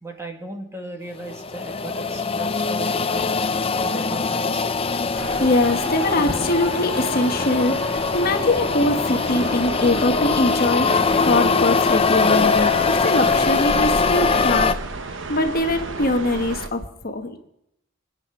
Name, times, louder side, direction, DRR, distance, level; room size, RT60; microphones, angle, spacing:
voice 1, 0.0-3.4 3.8-4.8, right 2 dB, 15° right, 3 dB, 1.8 m, -36 dB
sound 1, 1.2-14.7, left 4 dB, 30° left, 0.6 m, -22 dB
voice 2, 5.2-14.7 15.3-17.4, left 2 dB, 45° left, 5 dB, 1.2 m, -22 dB
sound 2, 5.2-16.7, right 3 dB, 65° right, 1.1 m, -33 dB
25.5 x 9.3 x 5.9 m, 0.81 s
head